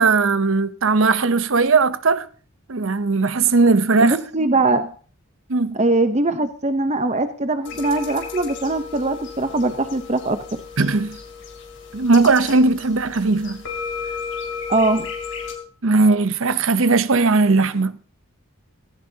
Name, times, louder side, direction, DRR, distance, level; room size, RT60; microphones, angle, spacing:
voice 1, 0.0-2.3 2.7-4.2 5.5-5.8 10.8-11.2 11.9-13.6 15.8-18.0, right 3 dB, 60° right, 0.8 m, -18 dB
voice 2, 4.0-4.9 5.7-10.6 14.7-15.1, right 2 dB, 30° right, 0.8 m, -21 dB
sound 1, 7.6-15.5, left 6 dB, 55° left, 3.6 m, -34 dB
17.0 x 16.0 x 2.8 m
head